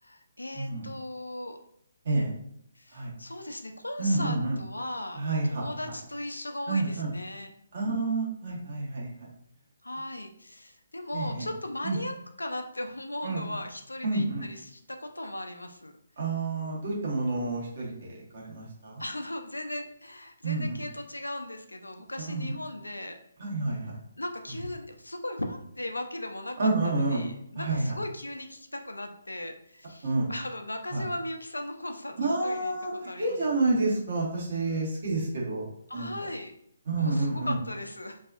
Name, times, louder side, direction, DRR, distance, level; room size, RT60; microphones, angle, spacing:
voice 1, 0.0-1.6 2.7-5.2 5.5-7.5 9.8-15.9 19.0-23.2 24.2-32.7 33.1-33.4 35.9-36.5 37.0-38.2, left 1 dB, 85° left, 5 dB, 0.4 m, -37 dB
voice 2, 0.5-0.9 2.0-2.3 2.9-3.1 4.0-4.6 5.1-5.6 6.7-7.1 7.7-9.1 11.1-11.5 11.8-12.0 13.2-13.4 14.0-14.4 16.2-19.0 20.4-20.8 22.2-22.6 23.4-23.9 26.6-27.2 27.5-27.9 30.0-30.3 30.9-31.0 32.2-35.7 35.9-36.1 36.9-37.6, right 2 dB, 50° right, -4 dB, 1.2 m, -29 dB
2.7 x 2.3 x 2.4 m, 0.71 s
figure-of-eight pair, 140°, 0 cm